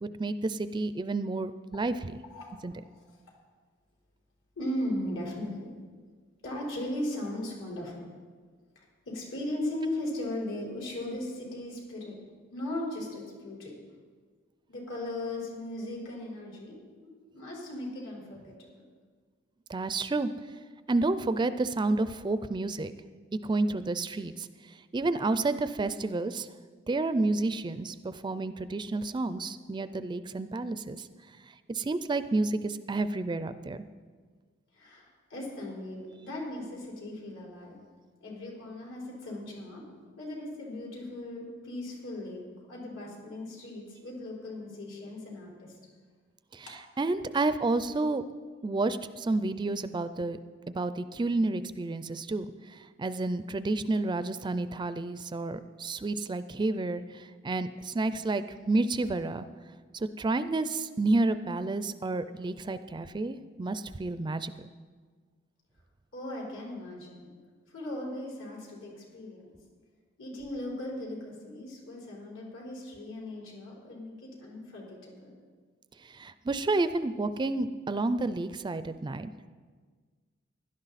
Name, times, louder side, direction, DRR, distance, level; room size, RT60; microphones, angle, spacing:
voice 1, 0.0-2.1 2.6-2.7 19.7-20.3 20.9-22.9 23.4-24.5 24.9-26.5 26.9-31.1 31.7-33.8 46.5-46.7 47.0-48.2 48.6-50.4 50.7-59.5 59.9-64.7 76.0-79.3, right 2 dB, 25° right, 13 dB, 0.4 m, -30 dB
voice 2, 4.6-5.7 6.4-8.0 8.7-12.2 12.5-13.8 14.7-18.8 34.7-37.8 38.2-39.8 40.2-42.4 42.7-45.8 46.7-46.8 66.1-67.4 67.7-69.6 70.2-75.4, left 1 dB, 80° left, -3 dB, 4.4 m, -38 dB
16.5 x 12.0 x 4.1 m, 1.5 s
head